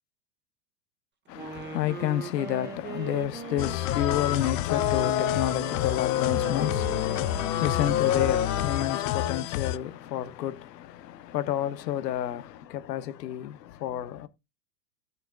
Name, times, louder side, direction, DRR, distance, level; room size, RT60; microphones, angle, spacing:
voice 1, 1.3-14.3, left 11 dB, 90° left, 1.1 m, -30 dB
Wind instrument woodwind instrument, 1.3-9.2, right 5 dB, 20° right, 1.9 m, -41 dB
sound 1, 3.6-9.8, left 15 dB, 55° left, 0.6 m, -30 dB
sound 2, 3.9-9.3, left 10 dB, 35° left, 1.3 m, -29 dB
15.0 x 6.8 x 2.5 m
supercardioid pair, 135°, 48 cm